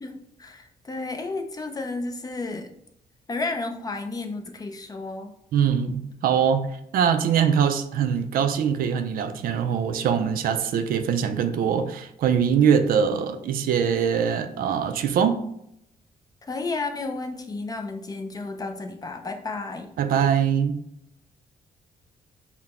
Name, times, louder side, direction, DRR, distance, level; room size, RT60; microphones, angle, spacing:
voice 1, 0.0-2.7 3.3-5.3 16.4-19.9, left 3 dB, 25° left, 0.5 m, -32 dB
voice 2, 5.5-15.4 20.0-20.8, right 7 dB, 70° right, 0.4 m, -23 dB
4.0 x 2.1 x 4.1 m
cardioid pair, 105°, 15 cm